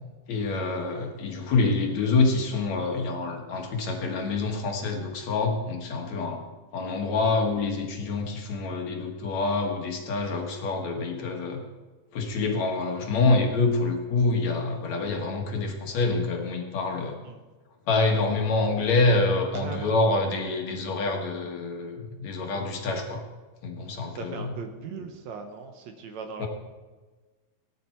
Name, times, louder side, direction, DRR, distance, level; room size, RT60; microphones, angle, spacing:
voice 1, 0.3-6.4 6.7-11.6 12.1-17.2 17.9-23.2 23.6-24.5 26.4-26.5, left 3 dB, 60° left, 1 dB, 2.8 m, -26 dB
voice 2, 19.5-20.0 24.0-26.5, right 5 dB, 65° right, 5 dB, 2.2 m, -38 dB
17.0 x 10.5 x 4.6 m, 1.3 s
omnidirectional pair, 3.6 m